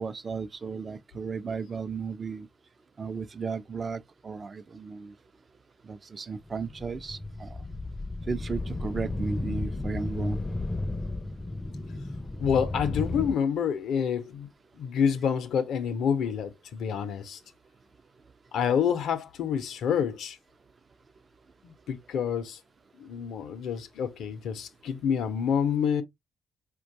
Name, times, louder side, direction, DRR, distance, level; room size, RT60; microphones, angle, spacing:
voice 1, 0.0-2.5 3.0-5.1 5.8-7.6 8.3-10.4, right 5 dB, 45° right, 0.4 m, -35 dB
sound 1, 6.5-13.3, left 2 dB, 25° left, 0.5 m, -33 dB
voice 2, 12.4-14.5 14.8-17.4 18.5-20.4 21.6-22.6 23.0-26.0, left 7 dB, 75° left, 0.6 m, -28 dB
4.4 x 2.2 x 2.6 m
hypercardioid pair, 50°, 0 cm